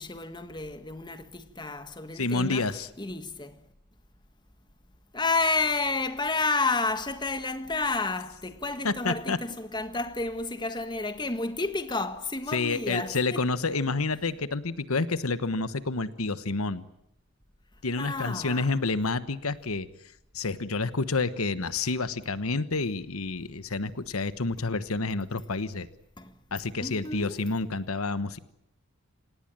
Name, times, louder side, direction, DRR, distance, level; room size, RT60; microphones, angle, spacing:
voice 1, 0.0-2.7 3.0-3.6 5.1-13.4 18.0-18.7 26.2-26.3 26.8-27.4, left 3 dB, 20° left, 1.5 m, -30 dB
voice 2, 2.1-2.9 8.8-9.4 12.5-16.8 17.8-19.9 20.3-25.9 26.5-28.4, left 3 dB, 90° left, 1.2 m, -29 dB
27.5 x 18.5 x 9.0 m
head